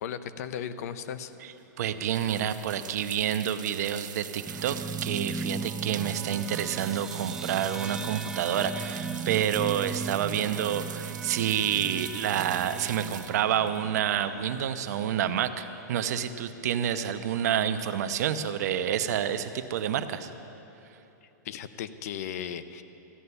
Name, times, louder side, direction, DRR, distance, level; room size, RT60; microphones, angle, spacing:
voice 1, 0.0-1.3 21.4-22.8, left 9 dB, 55° left, 12 dB, 0.6 m, -36 dB
sound 1, 1.3-14.5, right 10 dB, 85° right, 0.4 m, -43 dB
voice 2, 1.8-20.3, right 9 dB, 60° right, 10 dB, 0.7 m, -28 dB
sound 2, 4.5-15.2, right 5 dB, 5° right, 0.3 m, -37 dB
14.0 x 6.8 x 9.7 m, 3.0 s
hypercardioid pair, 160°, 10 cm